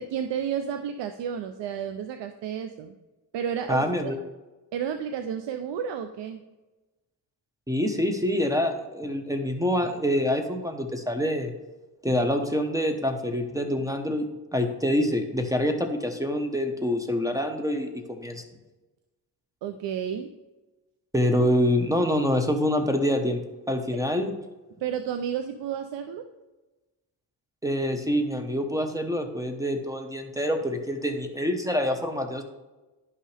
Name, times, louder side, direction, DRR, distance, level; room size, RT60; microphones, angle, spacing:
voice 1, 0.0-3.0 3.3-4.1 4.7-6.4 19.6-20.3 24.8-26.3, right 8 dB, 85° right, 8 dB, 0.6 m, -31 dB
voice 2, 3.7-4.2 7.7-11.5 12.0-14.2 14.5-18.4 21.1-24.3 27.6-32.4, equal, 10° right, 6 dB, 1.1 m, -26 dB
10.5 x 5.5 x 3.3 m, 1.1 s
cardioid pair, 60°, 41 cm